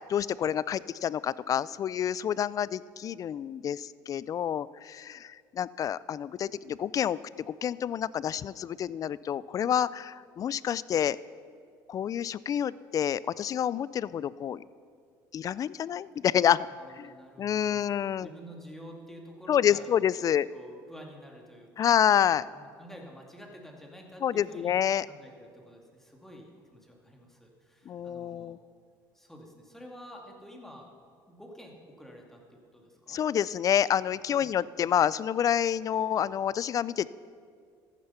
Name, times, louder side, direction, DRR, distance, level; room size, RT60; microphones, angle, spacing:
voice 1, 0.1-7.2 7.5-11.2 11.9-14.6 15.3-16.7 16.9-17.1 17.4-18.3 19.5-20.5 21.8-22.5 24.2-25.1 27.9-28.6 33.1-37.1, left 9 dB, 40° left, 20 dB, 0.3 m, -28 dB
voice 2, 16.8-17.8 18.2-19.9 20.2-22.0 22.5-24.8 25.0-28.6 29.1-30.9 31.3-33.2 34.3-34.5, equal, 5° left, 0 dB, 2.3 m, -49 dB
14.0 x 9.8 x 5.7 m, 2.2 s
supercardioid pair, 95°, 9 cm